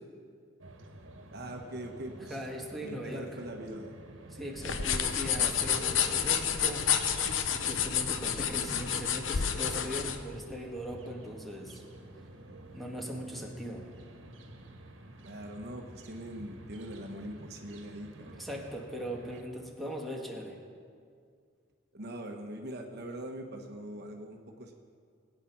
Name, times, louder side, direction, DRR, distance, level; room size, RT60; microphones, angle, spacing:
sound 1, 0.6-19.4, right 1 dB, 90° right, 1.5 m, -50 dB
voice 1, 1.3-2.4 2.8-4.0 15.2-18.5 21.9-24.7, right 1 dB, 55° right, 3 dB, 1.2 m, -42 dB
voice 2, 2.2-3.4 4.3-6.9 7.5-11.8 12.7-13.9 18.4-20.6, equal, ahead, 0 dB, 1.8 m, -39 dB
sound 2, 4.6-10.2, left 8 dB, 80° left, 0.9 m, -30 dB
sound 3, 9.3-11.4, left 3 dB, 35° left, 0.4 m, -39 dB
19.5 x 9.1 x 6.1 m, 2.2 s
head